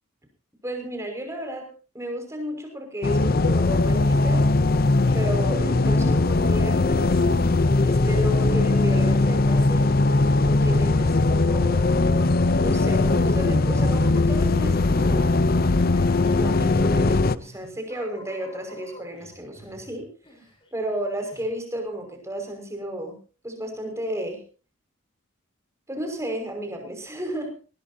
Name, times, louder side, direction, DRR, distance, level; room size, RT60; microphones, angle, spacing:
voice 1, 0.6-1.7 1.9-4.5 5.1-7.1 7.8-10.0 10.4-12.0 12.5-15.4 16.3-20.1 20.7-23.2 23.4-24.4 25.9-27.5, equal, 15° right, 4 dB, 5.7 m, -33 dB
sound 1, 3.0-17.4, left 2 dB, 45° left, 0.7 m, -20 dB
sound 2, 4.6-5.5 6.7-6.8 7.1-7.4 7.9-8.7 8.9-12.3 13.4-21.0 21.3-21.5, left 1 dB, 25° left, 7.1 m, -48 dB
20.0 x 19.0 x 2.8 m, 0.36 s
head